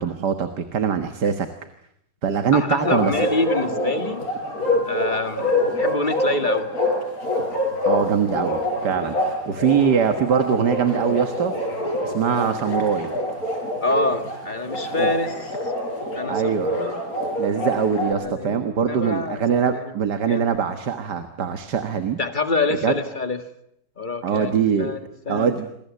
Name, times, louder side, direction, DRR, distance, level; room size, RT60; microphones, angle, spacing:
voice 1, 0.0-1.5 2.2-3.1 7.9-9.2 9.5-11.5 12.0-13.1 15.0-15.1 16.3-16.7 17.4-22.2 22.8-22.9 24.2-24.9 25.3-25.7, right 7 dB, 65° right, 8 dB, 2.0 m, -22 dB
voice 2, 2.5-4.2 4.8-6.7 13.8-15.6 16.1-17.0 18.2-19.9 20.3-20.5 22.2-23.4 24.0-25.6, left 3 dB, 25° left, 8 dB, 1.8 m, -26 dB
Bark, 2.8-18.1, left 1 dB, 50° left, 6.1 m, -26 dB
27.5 x 22.5 x 8.3 m, 0.76 s
omnidirectional pair, 1.9 m